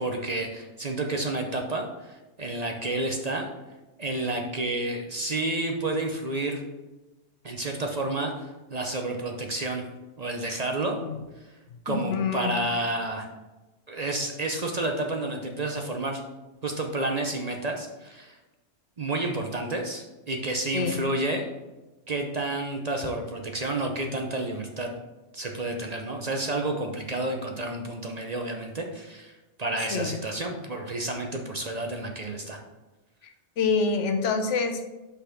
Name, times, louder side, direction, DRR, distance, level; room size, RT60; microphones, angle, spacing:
voice 1, 0.0-3.5 4.0-6.6 7.4-9.8 10.2-11.0 11.9-13.3 13.9-16.2 16.6-18.4 19.0-21.5 22.1-24.9 25.3-29.3 29.6-32.6, right 2 dB, 40° right, 2 dB, 0.7 m, -30 dB
voice 2, 11.9-12.5 20.7-20.9 29.9-30.1 33.6-34.9, left 5 dB, 80° left, 6 dB, 1.1 m, -26 dB
5.5 x 4.3 x 5.7 m, 1.1 s
omnidirectional pair, 1.2 m